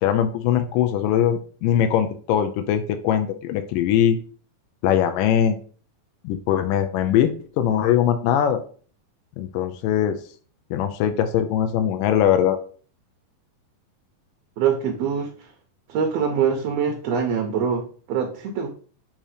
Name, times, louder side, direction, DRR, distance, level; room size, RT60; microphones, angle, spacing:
voice 1, 0.0-4.2 4.8-5.6 6.2-7.3 7.6-8.6 9.4-10.2 10.7-12.6, left 10 dB, 85° left, 7 dB, 2.3 m, -21 dB
voice 2, 14.6-15.5 15.9-18.7, right 7 dB, 70° right, 4 dB, 1.6 m, -24 dB
7.4 x 3.0 x 4.9 m, 0.42 s
omnidirectional pair, 3.8 m